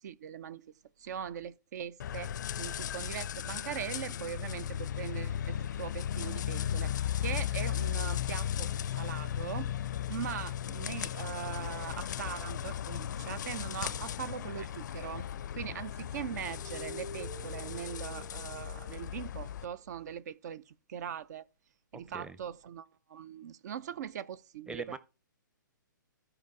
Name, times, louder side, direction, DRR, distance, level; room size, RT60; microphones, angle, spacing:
voice 1, 0.0-0.7 1.0-2.3 2.6-8.7 9.0-9.7 10.1-15.3 15.5-21.5 21.9-25.0, right 8 dB, 55° right, 0.6 m, -41 dB
sound 1, 2.0-19.6, left 10 dB, 65° left, 0.4 m, -36 dB
sound 2, 15.3-15.8 16.1-19.2, right 1 dB, 25° right, 2.2 m, -49 dB
voice 2, 21.9-22.4 24.7-25.0, right 4 dB, 5° right, 0.7 m, -42 dB
13.5 x 4.9 x 4.7 m
hypercardioid pair, 130°, 11 cm